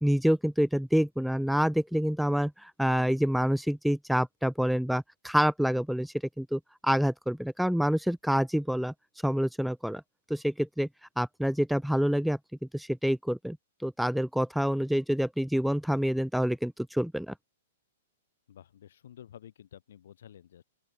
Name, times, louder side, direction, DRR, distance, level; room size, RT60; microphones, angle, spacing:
voice 1, 0.0-8.9 9.2-10.0 10.3-10.9 11.2-12.4 12.7-13.6 13.8-17.3, equal, ahead, 0.4 m, -27 dB
voice 2, 18.5-20.6, left 10 dB, 65° left, 3.6 m, -51 dB
open air
hypercardioid pair, 115°, 0 cm